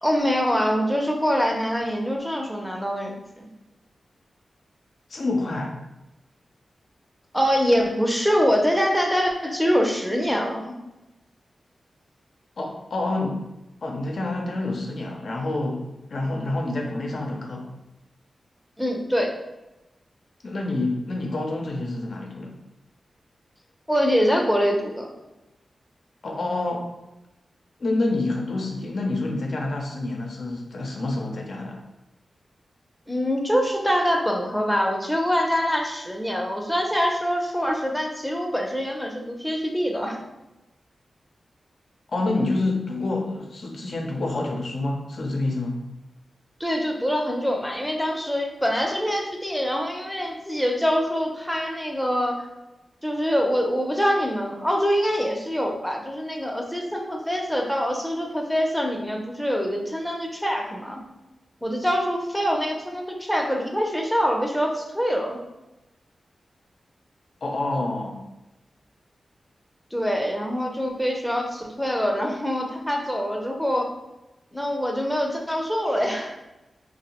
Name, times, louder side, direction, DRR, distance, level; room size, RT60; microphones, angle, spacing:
voice 1, 0.0-3.5 7.3-10.8 18.8-19.3 23.9-25.1 33.1-40.2 46.6-52.5 53.0-61.0 61.6-65.4 69.9-73.9 74.5-76.4, equal, 5° left, 1 dB, 0.5 m, -24 dB
voice 2, 5.1-5.8 12.6-13.4 13.8-17.7 20.4-22.6 26.2-26.9 27.8-31.8 42.1-45.8 67.4-68.2, left 2 dB, 70° left, 1 dB, 0.5 m, -27 dB
2.6 x 2.0 x 2.9 m, 0.97 s
cardioid pair, 50°, 0 cm